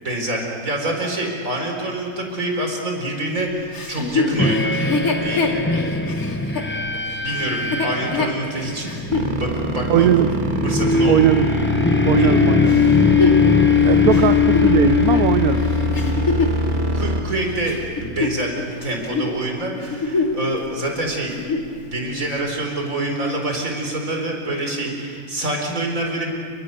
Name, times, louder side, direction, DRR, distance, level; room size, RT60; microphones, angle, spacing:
voice 1, 0.0-4.8 5.2-5.6 7.2-8.9 9.3-10.1 10.6-11.3 12.2-12.4 14.1-14.2 16.4-18.5 18.8-26.3, right 1 dB, 65° right, 1 dB, 4.7 m, -26 dB
Chuckle chortle, 3.7-9.3 9.9-10.0 12.7-16.6 17.3-18.7 19.0-19.3 19.7-20.5 20.8-20.9 21.3-21.7 22.4-22.5, left 4 dB, 75° left, 3.0 m, -24 dB
sound 1, 4.4-16.4, left 5 dB, 10° left, 0.7 m, -20 dB
sound 2, 9.1-17.2, equal, 35° right, 1.9 m, -24 dB
voice 2, 9.9-10.3 11.1-11.5 12.1-13.0 13.8-15.7, right 10 dB, 85° right, 9 dB, 1.3 m, -19 dB
28.5 x 24.0 x 6.7 m, 2.2 s
omnidirectional pair, 1.5 m